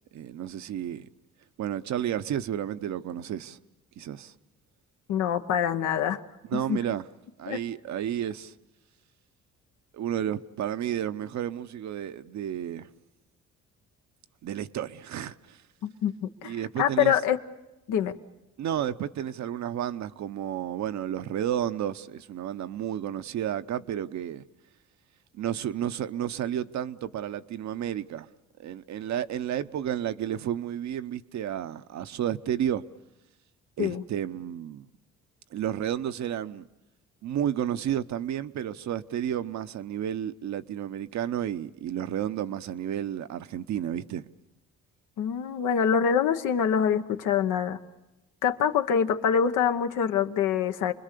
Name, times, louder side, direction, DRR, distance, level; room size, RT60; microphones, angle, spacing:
voice 1, 0.1-1.1 1.6-3.6 4.0-4.3 6.5-7.1 7.4-8.5 9.9-12.9 14.4-15.6 16.4-17.1 18.6-24.4 25.4-28.3 28.6-32.8 33.8-34.9 35.5-36.6 37.2-44.3, right 10 dB, 65° right, 0.8 m, -31 dB
voice 2, 5.1-6.2 6.5-6.8 7.5-7.6 15.8-16.5 16.8-17.4 17.9-18.1 33.8-34.0 45.2-47.8 48.4-50.9, left 8 dB, 90° left, 1.1 m, -25 dB
28.0 x 21.0 x 6.8 m
cardioid pair, 90°, 30 cm